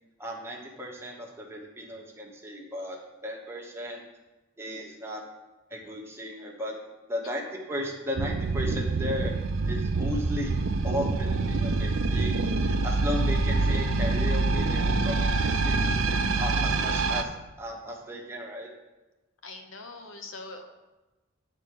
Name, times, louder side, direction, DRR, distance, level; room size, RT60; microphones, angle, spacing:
voice 1, 0.2-4.0 4.6-5.2 5.7-6.8 7.1-10.5 10.8-18.7, equal, 10° right, -1 dB, 1.2 m, -36 dB
sound 1, 8.1-17.2, right 3 dB, 70° right, 0.6 m, -26 dB
voice 2, 19.4-20.7, left 3 dB, 70° left, 5 dB, 0.9 m, -42 dB
8.9 x 4.3 x 6.5 m, 1.1 s
head